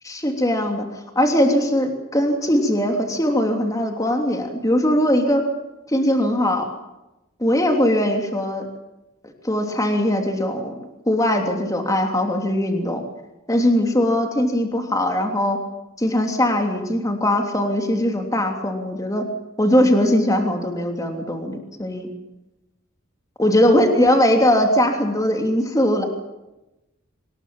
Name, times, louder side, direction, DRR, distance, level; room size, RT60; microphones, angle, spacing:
voice 1, 0.0-5.4 5.9-6.7 7.4-8.7 9.4-10.7 11.1-13.0 13.5-15.6 16.0-19.3 19.6-22.1 23.4-26.0, left 1 dB, 15° left, 3 dB, 3.1 m, -20 dB
25.0 x 21.0 x 7.3 m, 0.96 s
head